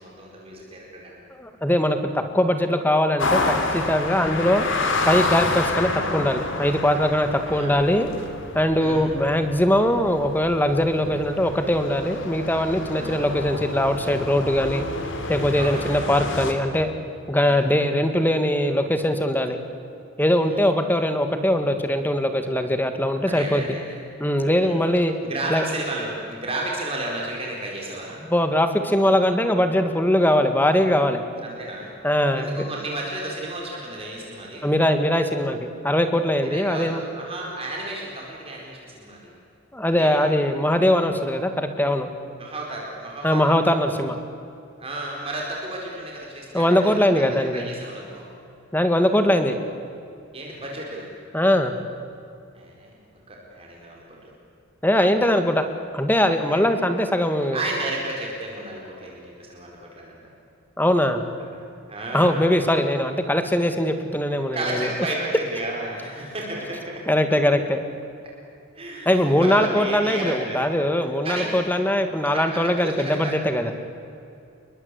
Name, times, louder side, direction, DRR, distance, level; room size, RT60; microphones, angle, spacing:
voice 1, 0.0-1.2 4.1-4.3 5.5-5.6 7.4-7.7 8.8-9.0 10.9-11.1 12.9-13.2 15.5-15.8 17.4-17.6 20.4-20.6 23.3-24.0 24.6-24.8 25.2-28.2 31.4-31.9 32.3-34.7 36.4-39.2 40.0-40.2 42.4-43.5 44.8-47.0 47.3-48.3 50.3-51.1 52.5-52.9 53.3-54.3 56.5-56.6 57.4-60.2 61.5-61.6 61.9-62.4 64.5-67.0 68.7-70.9 71.2-71.5 72.2-73.3, right 1 dB, 25° right, -2 dB, 4.6 m, -33 dB
voice 2, 1.4-4.7 5.1-8.1 8.5-14.9 15.3-16.9 17.3-19.6 20.2-23.7 24.2-25.1 25.5-25.6 28.3-31.2 32.0-32.6 34.6-37.0 39.7-42.1 43.2-44.2 46.5-47.7 48.7-49.6 51.3-51.7 54.8-55.6 55.9-57.6 60.8-61.2 62.1-64.9 67.1-67.8 69.1-73.7, left 1 dB, 10° left, 7 dB, 2.0 m, -21 dB
sound 1, 3.2-16.5, left 2 dB, 60° left, 3.3 m, -29 dB
29.0 x 23.0 x 8.4 m, 2.6 s
head